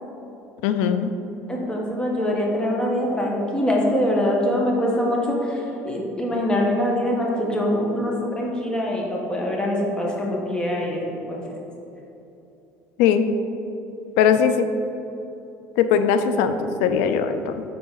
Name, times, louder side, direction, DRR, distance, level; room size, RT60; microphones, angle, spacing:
voice 1, 0.6-1.1 13.0-13.3 14.2-14.7 15.8-17.6, left 7 dB, 85° left, 9 dB, 0.4 m, -20 dB
voice 2, 1.5-11.5, left 1 dB, 15° left, -2 dB, 1.4 m, -24 dB
9.3 x 3.9 x 3.9 m, 2.9 s
cardioid pair, 110°, 7 cm